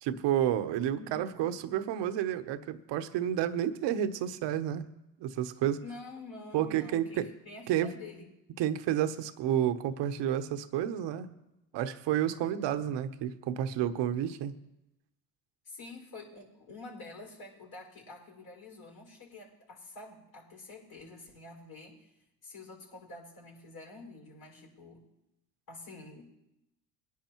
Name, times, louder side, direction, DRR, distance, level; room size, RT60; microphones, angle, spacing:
voice 1, 0.0-4.9 5.2-5.8 6.5-7.3 7.7-7.9 8.6-11.3 11.7-14.5, right 10 dB, 75° right, 10 dB, 1.0 m, -30 dB
voice 2, 0.9-1.5 5.8-8.3 15.6-22.1 22.4-25.0 25.7-26.2, left 2 dB, 55° left, -1 dB, 5.4 m, -48 dB
21.0 x 10.5 x 3.0 m, 0.91 s
supercardioid pair, 70°, 43 cm